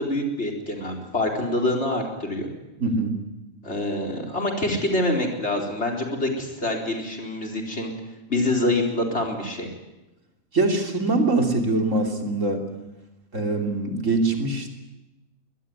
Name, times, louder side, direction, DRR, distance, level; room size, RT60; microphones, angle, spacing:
voice 1, 0.0-2.5 3.6-7.9 8.3-9.7, left 1 dB, 50° left, 2 dB, 4.4 m, -26 dB
voice 2, 2.8-3.2 10.5-12.7 13.3-14.8, right 2 dB, 65° right, 3 dB, 3.5 m, -23 dB
22.5 x 20.5 x 9.5 m, 1.0 s
omnidirectional pair, 1.4 m